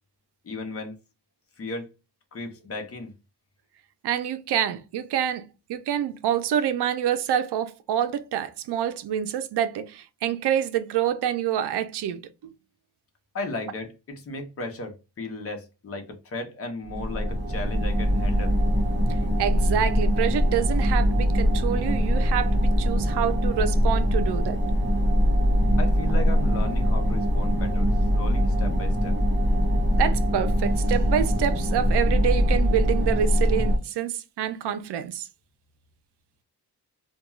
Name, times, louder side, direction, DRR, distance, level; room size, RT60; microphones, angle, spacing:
voice 1, 0.4-1.0 1.6-1.9 2.3-3.1 13.3-18.6 25.8-27.9 28.1-29.2, left 2 dB, 35° left, 0.7 m, -35 dB
voice 2, 4.0-12.3 19.4-24.6 29.9-35.3, right 9 dB, 90° right, 0.5 m, -27 dB
sound 1, 16.9-33.8, equal, 30° right, 0.8 m, -22 dB
2.3 x 2.2 x 3.0 m
wide cardioid pair, 130°, 39 cm